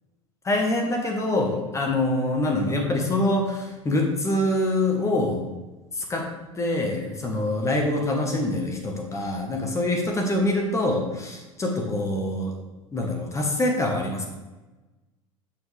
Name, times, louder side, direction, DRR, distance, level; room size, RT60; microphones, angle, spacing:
voice 1, 0.4-5.4 6.1-6.3 6.6-12.5 12.9-14.3, left 1 dB, 15° left, 0 dB, 1.4 m, -25 dB
6.7 x 6.4 x 3.4 m, 1.1 s
figure-of-eight pair, 80°, 17 cm